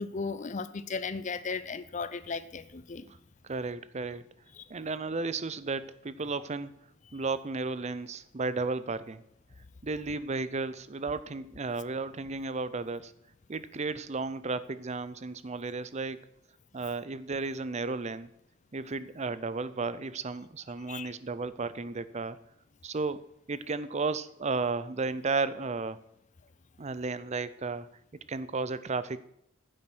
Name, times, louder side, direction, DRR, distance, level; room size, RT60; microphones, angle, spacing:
voice 1, 0.0-3.1 4.6-4.7 20.9-21.1, left 4 dB, 35° left, 15 dB, 0.6 m, -36 dB
voice 2, 3.4-4.2 4.7-6.8 7.1-9.2 9.8-13.1 13.5-16.2 16.7-18.3 18.7-22.4 22.8-23.2 23.5-26.0 26.8-27.9 28.3-29.2, right 3 dB, 35° right, 15 dB, 0.6 m, -33 dB
10.0 x 7.7 x 6.1 m, 0.74 s
head